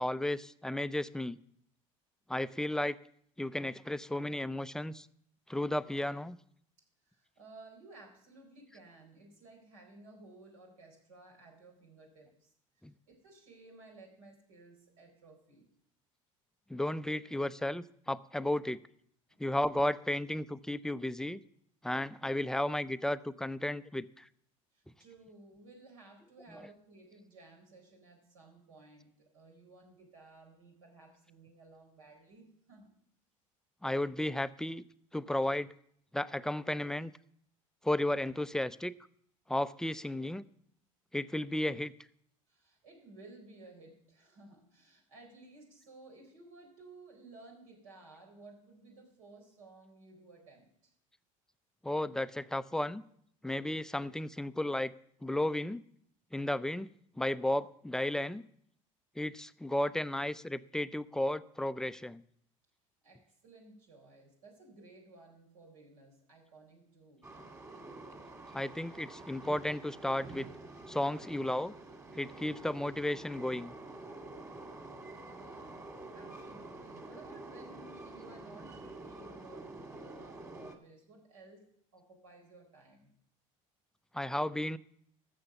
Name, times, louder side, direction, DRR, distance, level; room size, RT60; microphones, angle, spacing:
voice 1, 0.0-1.4 2.3-3.0 3.4-5.1 5.5-6.4 12.8-12.9 16.7-18.8 19.4-21.4 21.8-24.3 26.5-26.6 33.8-34.8 35.1-35.7 36.1-37.1 37.8-38.9 39.5-40.4 41.1-41.9 51.8-53.0 53.4-54.9 55.2-55.8 56.3-56.9 57.2-58.4 59.2-62.2 68.5-70.5 70.9-71.7 72.1-73.7 84.1-84.8, left 1 dB, 5° left, 15 dB, 0.5 m, -33 dB
voice 2, 7.0-12.5 13.1-15.7 24.7-32.9 42.5-50.9 63.0-67.2 75.2-75.8 76.1-83.1, right 3 dB, 75° right, 1 dB, 4.5 m, -56 dB
Train, 67.2-80.8, right 2 dB, 15° right, 2.2 m, -48 dB
14.0 x 6.6 x 7.0 m, 0.69 s
hypercardioid pair, 70°, 17 cm